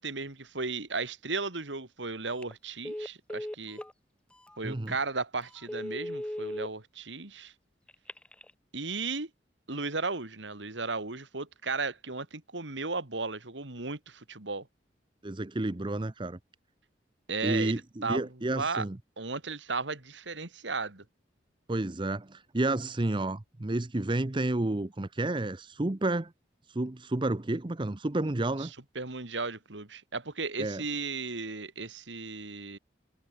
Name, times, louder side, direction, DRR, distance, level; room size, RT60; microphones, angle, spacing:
voice 1, 0.0-3.8 4.6-7.5 8.7-9.3 9.7-14.7 17.3-18.2 18.5-18.8 19.2-21.0 28.6-28.7 28.9-32.8, right 4 dB, 80° right, 2.7 m, -35 dB
Telephone, 2.3-2.5 2.8-3.9 4.5-4.6 5.0-5.1 5.6-6.7 7.9-8.5, left 1 dB, 5° left, 0.4 m, -37 dB
voice 2, 4.6-5.0 15.2-16.4 17.4-19.0 21.7-26.3 26.7-28.7 30.6-30.8, right 2 dB, 25° right, 0.7 m, -30 dB
head